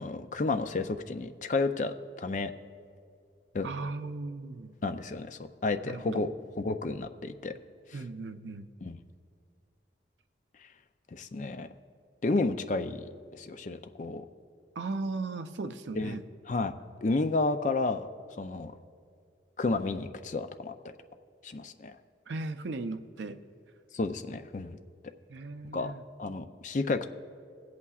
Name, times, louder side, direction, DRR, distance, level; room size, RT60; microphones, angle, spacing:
voice 1, 0.0-2.5 3.5-3.7 4.8-6.3 6.6-7.5 8.8-9.0 11.1-11.7 12.2-14.2 16.0-16.2 16.5-16.7 17.0-18.1 18.4-18.7 19.6-20.9 21.4-22.0 23.9-24.8 25.7-25.9 26.2-27.1, left 3 dB, 40° left, 9 dB, 0.4 m, -31 dB
voice 2, 3.6-4.7 5.8-6.2 7.9-8.7 14.8-16.2 22.3-23.4 25.3-26.0, right 3 dB, 80° right, 10 dB, 0.5 m, -37 dB
23.5 x 8.3 x 2.4 m, 2.3 s
head